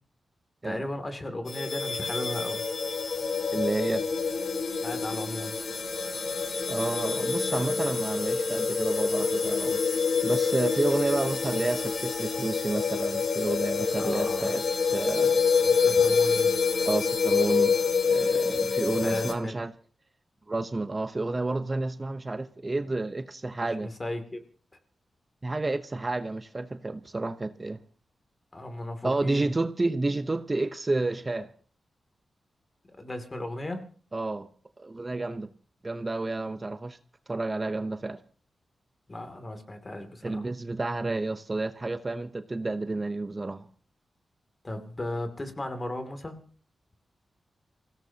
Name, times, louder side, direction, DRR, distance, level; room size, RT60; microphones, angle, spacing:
voice 1, 0.6-2.6 4.8-5.5 13.9-14.5 15.6-16.5 19.0-19.6 23.8-24.4 28.5-29.5 33.0-33.8 39.1-40.5 44.6-46.4, left 1 dB, 30° left, 2.6 m, -36 dB
sound 1, 1.5-19.3, left 5 dB, 70° left, 2.4 m, -27 dB
voice 2, 3.5-4.0 6.7-14.6 14.9-15.4 16.8-17.7 18.1-19.7 20.5-23.9 25.4-27.8 29.0-31.5 34.1-34.5 34.8-35.5 35.8-37.0 37.3-38.2 40.2-43.7, right 2 dB, 30° right, 0.8 m, -30 dB
27.5 x 16.5 x 2.9 m
cardioid pair, 75°, 0 cm